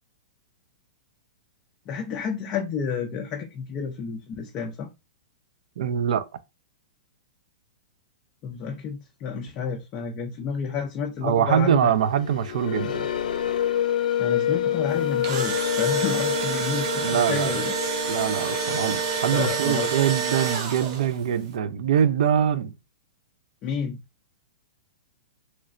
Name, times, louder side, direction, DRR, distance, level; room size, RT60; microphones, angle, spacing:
voice 1, 1.9-4.9 8.4-11.9 14.2-17.7 19.3-19.9 23.6-24.0, left 6 dB, 20° left, 0.4 m, -30 dB
voice 2, 5.8-6.3 11.2-13.1 17.0-17.6 18.1-22.7, right 9 dB, 60° right, 0.5 m, -23 dB
sound 1, 12.1-20.5, left 10 dB, 85° left, 0.6 m, -28 dB
Engine / Drill, 15.0-21.2, right 7 dB, 35° right, 0.8 m, -28 dB
3.1 x 2.9 x 2.5 m
hypercardioid pair, 170°, 4 cm